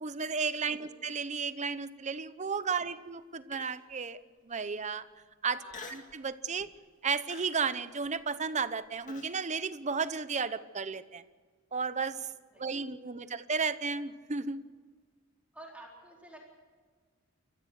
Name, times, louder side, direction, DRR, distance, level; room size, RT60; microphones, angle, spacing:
voice 1, 0.0-5.1 5.4-5.6 5.9-6.7 7.0-11.2 11.7-12.3 12.6-14.6, right 5 dB, 35° right, 13 dB, 0.9 m, -33 dB
voice 2, 0.6-0.9 2.7-2.8 5.5-6.2 12.5-12.8 13.2-13.3 15.5-16.5, right 1 dB, 5° right, -2 dB, 4.3 m, -52 dB
Human voice, 3.5-3.9 4.5-4.6 5.7-6.2 6.6-6.9 7.3-9.4, left 4 dB, 35° left, 2.1 m, -48 dB
28.0 x 15.0 x 6.6 m, 1.5 s
head